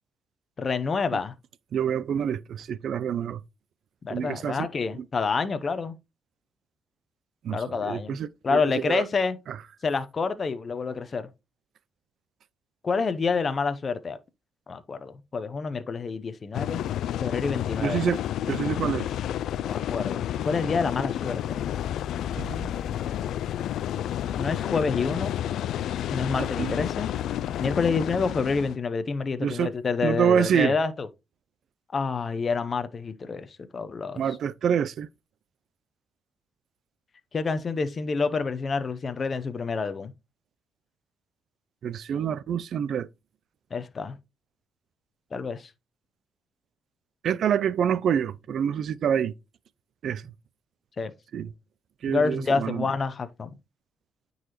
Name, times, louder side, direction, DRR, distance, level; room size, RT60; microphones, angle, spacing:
voice 1, 0.6-1.3 4.0-6.0 7.5-9.4 9.8-11.3 12.8-14.2 14.7-16.8 17.2-18.1 19.6-21.6 24.4-25.3 26.1-27.1 27.6-31.1 31.9-33.5 33.7-34.2 37.3-40.1 43.7-44.2 45.3-45.7 51.0-51.1 52.1-53.6, left 4 dB, 40° left, 0.7 m, -28 dB
voice 2, 1.7-3.4 4.1-4.7 4.9-5.0 7.4-9.1 9.5-9.6 17.8-18.2 18.5-19.1 22.4-22.7 26.6-26.8 29.4-29.7 30.0-30.7 34.2-35.1 41.8-43.1 47.2-49.3 50.0-50.3 51.3-51.5 52.0-52.9, right 8 dB, 65° right, 0.4 m, -27 dB
sound 1, 16.5-28.7, left 11 dB, 75° left, 0.3 m, -30 dB
9.2 x 4.0 x 3.0 m
cardioid pair, 90°, 0 cm